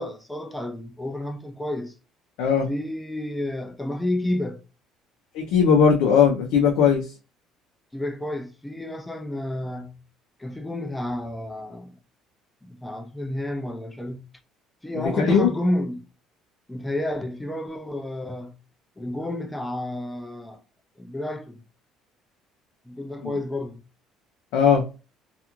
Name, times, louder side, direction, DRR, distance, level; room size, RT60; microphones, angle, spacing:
voice 1, 0.0-1.9 2.7-4.6 7.9-10.0 10.4-12.0 12.6-14.3 14.8-16.0 16.7-18.6 19.0-20.6 21.0-21.6 22.9-23.8, left 1 dB, 5° left, 0.3 m, -30 dB
voice 2, 2.4-2.7 5.3-7.1 15.0-15.5 23.2-23.4 24.5-25.0, left 6 dB, 90° left, 0.6 m, -19 dB
2.4 x 2.4 x 2.8 m
cardioid pair, 170°, 0 cm